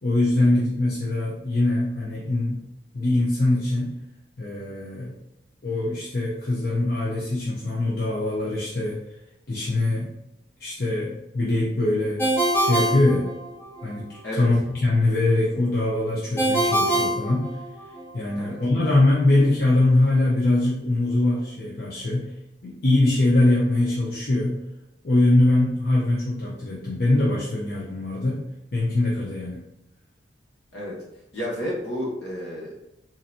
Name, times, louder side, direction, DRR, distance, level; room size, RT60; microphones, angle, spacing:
voice 1, 0.0-2.6 2.9-3.9 4.4-5.1 5.6-9.0 9.5-10.1 10.6-12.2 12.6-13.3 13.8-14.1 14.3-17.5 18.1-22.3 22.6-24.6 25.0-28.4 28.7-29.6, left 2 dB, 50° left, -7 dB, 0.8 m, -22 dB
Ringtone, 12.2-13.9 16.4-18.0, right 1 dB, 15° left, 0.5 m, -24 dB
voice 2, 31.3-32.8, equal, 75° left, -4 dB, 1.4 m, -31 dB
3.9 x 2.8 x 2.6 m, 0.88 s
head